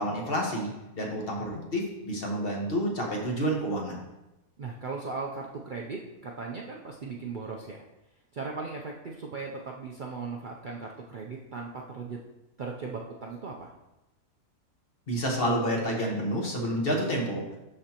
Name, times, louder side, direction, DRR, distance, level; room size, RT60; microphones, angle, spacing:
voice 1, 0.0-4.0 15.1-17.4, equal, 40° left, -1 dB, 1.3 m, -29 dB
voice 2, 4.6-7.8 8.3-12.2 12.6-13.7, right 4 dB, 85° right, -1 dB, 0.4 m, -38 dB
11.5 x 4.4 x 2.9 m, 0.97 s
omnidirectional pair, 1.7 m